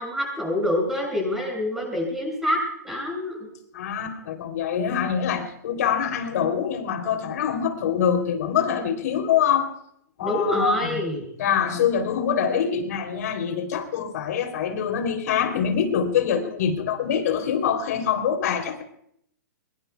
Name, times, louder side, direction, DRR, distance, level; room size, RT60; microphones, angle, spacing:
voice 1, 0.0-2.6 2.8-3.5 10.2-11.3, left 1 dB, 5° right, -1 dB, 6.9 m, -26 dB
voice 2, 3.7-9.7 10.2-11.0 11.4-18.8, left 8 dB, 60° left, 5 dB, 3.4 m, -24 dB
23.0 x 22.5 x 2.4 m, 0.70 s
hypercardioid pair, 140°, 10 cm